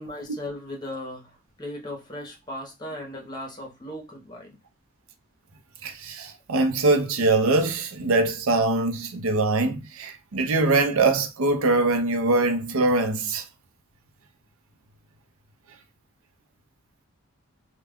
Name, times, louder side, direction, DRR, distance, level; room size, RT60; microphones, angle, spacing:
voice 1, 0.0-4.6, left 1 dB, 20° left, 0.8 m, -37 dB
voice 2, 5.8-13.4, right 2 dB, 70° right, 0.6 m, -23 dB
2.3 x 2.2 x 3.4 m
head